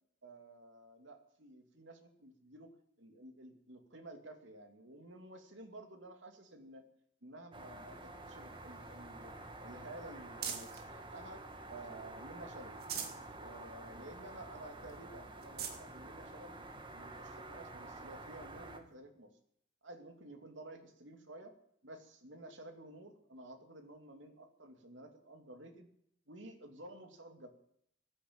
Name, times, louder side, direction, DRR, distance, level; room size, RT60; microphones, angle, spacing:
voice 1, 0.2-2.7 3.0-6.9 7.2-9.3 9.6-12.8 13.4-16.7 16.9-19.3 19.8-21.5 21.8-25.9 26.3-27.5, right 1 dB, 85° right, 5 dB, 2.7 m, -52 dB
sound 1, 7.5-18.8, right 2 dB, 25° right, 1.7 m, -49 dB
sound 2, 8.2-10.9 11.4-12.2 12.6-13.3 13.7-13.8 14.2-14.3 14.9-15.0 15.4-15.8 16.7-16.8 18.5-18.6, right 7 dB, 55° right, 2.3 m, -45 dB
15.0 x 10.5 x 8.7 m, 0.70 s
head